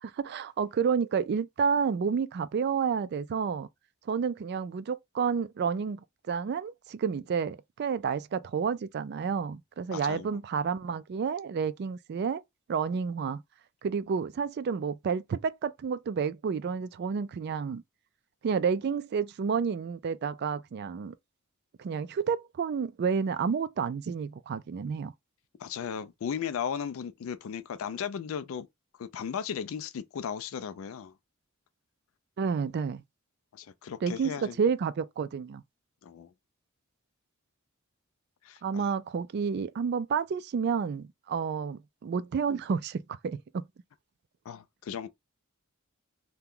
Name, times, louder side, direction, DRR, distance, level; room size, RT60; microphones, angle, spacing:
voice 1, 0.0-3.7 4.1-6.0 6.3-12.4 12.7-13.4 13.8-17.8 18.4-21.1 21.8-25.1 32.4-33.0 34.0-35.6 38.6-43.6, right 6 dB, 50° right, 0.3 m, -30 dB
voice 2, 9.9-10.3 25.6-28.7 29.0-31.1 33.5-34.6 36.0-36.3 38.4-38.9 44.5-45.1, left 7 dB, 70° left, 0.4 m, -36 dB
2.8 x 2.2 x 3.7 m
head